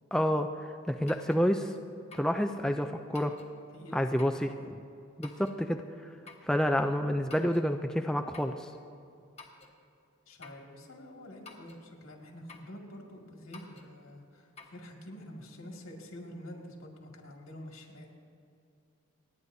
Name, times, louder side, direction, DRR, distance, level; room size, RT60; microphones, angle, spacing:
voice 1, 0.1-1.7 2.1-3.3 3.9-4.7 5.2-5.8 6.5-8.7, equal, 5° left, 5 dB, 0.3 m, -29 dB
sound 1, 1.1-1.4 2.1-2.4 3.1-3.5 4.2-4.4 5.2-5.6 6.3-6.5 7.3-7.7 8.3-8.6 9.4-9.8 10.4-10.7 11.4-11.8 12.5-12.7 13.5-13.9 14.6-14.7, left 4 dB, 30° left, 1.0 m, -51 dB
voice 2, 3.7-4.7 10.3-18.1, left 1 dB, 90° left, 0 dB, 2.2 m, -47 dB
29.0 x 9.7 x 2.7 m, 2.5 s
head